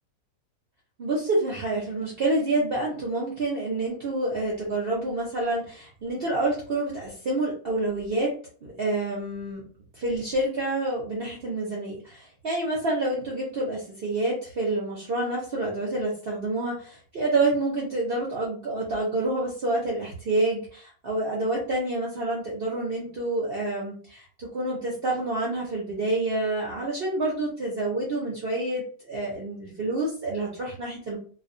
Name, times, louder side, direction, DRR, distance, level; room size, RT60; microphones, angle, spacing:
voice 1, 1.0-8.3 8.6-9.6 9.9-31.2, right 2 dB, 55° right, -4 dB, 0.7 m, -28 dB
2.4 x 2.2 x 2.5 m, 0.43 s
omnidirectional pair, 1.6 m